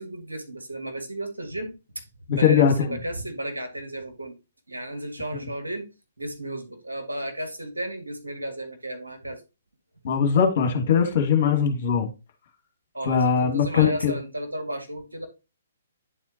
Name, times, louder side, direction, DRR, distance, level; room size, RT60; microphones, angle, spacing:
voice 1, 0.0-2.0 2.3-4.4 4.7-5.9 6.2-9.4 12.9-15.3, right 1 dB, 80° right, 2.0 m, -33 dB
voice 2, 2.3-2.7 10.0-12.1 13.0-14.2, left 7 dB, 45° left, 1.6 m, -20 dB
10.0 x 4.2 x 2.9 m
figure-of-eight pair, 125°, 0 cm